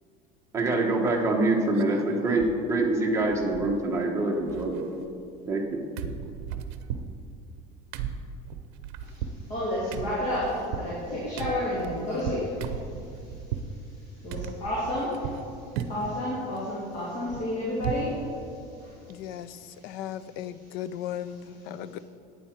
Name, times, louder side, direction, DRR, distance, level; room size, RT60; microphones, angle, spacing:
voice 1, 0.5-4.8 5.5-5.8, right 2 dB, 15° right, 1.1 m, -25 dB
sound 1, 1.0-1.4 1.8-2.6 2.8-2.9 3.2-4.1 4.3-5.7 6.0-13.7 14.3-15.5 15.8-16.2 16.6-18.2 18.5-18.6 18.9-19.1, right 8 dB, 65° right, 0.7 m, -37 dB
voice 2, 9.5-12.8 14.2-15.3 15.9-18.2 18.8-18.9, left 1 dB, 35° left, 2.7 m, -30 dB
voice 3, 19.1-22.0, left 10 dB, 55° left, 0.4 m, -37 dB
11.0 x 9.2 x 4.5 m
cardioid pair, 170°, 19 cm